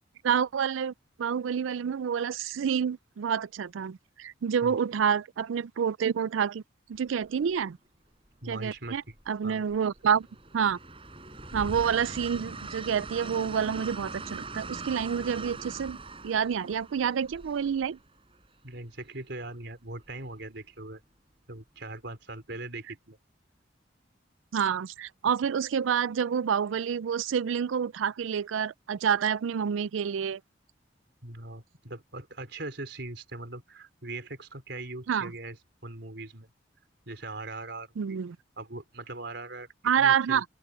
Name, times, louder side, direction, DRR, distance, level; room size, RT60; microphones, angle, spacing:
voice 1, 0.2-0.9 1.2-6.6 6.9-7.8 8.5-10.3 10.5-10.8 11.5-16.0 16.2-18.0 24.5-30.4 35.1-35.3 38.0-38.4 39.8-40.4, right 7 dB, 90° right, 0.4 m, -28 dB
Train, 6.9-7.3 8.6-9.3 9.7-18.5 20.1-20.3, right 3 dB, 30° right, 5.1 m, -41 dB
voice 2, 8.4-9.1 9.4-9.7 12.3-12.7 18.6-21.0 21.5-23.2 31.2-36.5 37.1-38.2 38.6-39.7 40.0-40.4, right 2 dB, 65° right, 4.1 m, -40 dB
open air
head